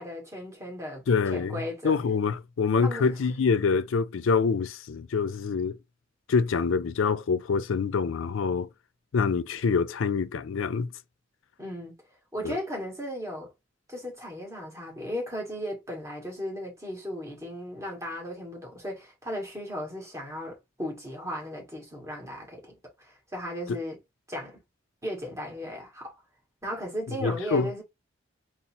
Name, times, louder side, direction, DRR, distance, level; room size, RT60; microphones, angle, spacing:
voice 1, 0.0-1.0 1.3-2.0 2.8-3.1 11.6-11.9 12.3-13.5 13.9-24.0 24.3-24.6 25.0-26.2 26.6-27.8, equal, 15° right, 1.7 m, -36 dB
voice 2, 1.1-5.8 6.3-8.7 9.1-10.9 12.4-12.6 23.7-23.8 27.1-27.7, left 5 dB, 85° left, 0.4 m, -26 dB
4.0 x 2.0 x 4.2 m
head